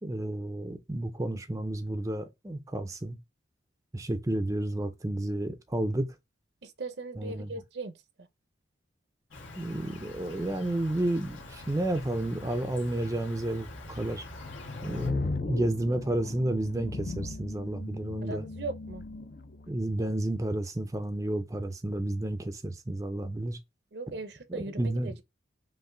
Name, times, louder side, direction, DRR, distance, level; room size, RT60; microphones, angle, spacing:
voice 1, 0.0-3.2 3.9-6.1 7.2-7.5 9.6-14.2 14.8-18.4 19.7-23.6 24.5-25.1, right 1 dB, 15° right, 0.5 m, -31 dB
voice 2, 6.6-7.9 18.2-19.0 23.9-25.2, right 3 dB, 60° right, 0.7 m, -39 dB
Insect, 9.3-15.1, left 1 dB, 85° left, 1.4 m, -45 dB
sound 1, 14.4-19.7, left 3 dB, 45° left, 0.4 m, -37 dB
5.4 x 2.6 x 3.7 m
head